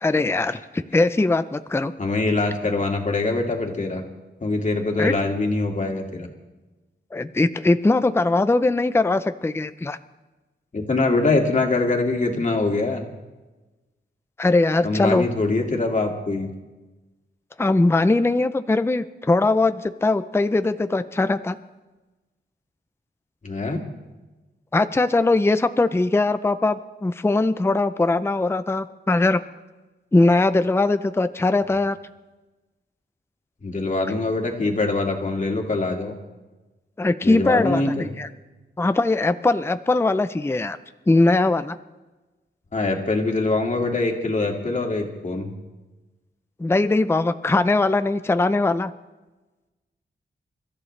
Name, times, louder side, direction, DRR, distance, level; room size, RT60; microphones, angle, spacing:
voice 1, 0.0-1.9 5.0-5.1 7.1-10.0 14.4-15.3 17.6-21.6 24.7-29.4 30.1-32.0 37.0-38.3 38.8-40.8 41.1-41.8 46.6-48.9, left 2 dB, 15° left, 11 dB, 0.5 m, -20 dB
voice 2, 2.0-4.0 4.4-6.3 10.7-13.0 14.8-16.5 23.4-23.8 33.6-36.1 37.2-38.1 42.7-45.5, left 3 dB, 40° left, 1 dB, 2.3 m, -23 dB
29.5 x 14.0 x 3.3 m, 1.1 s
wide cardioid pair, 140°, 19 cm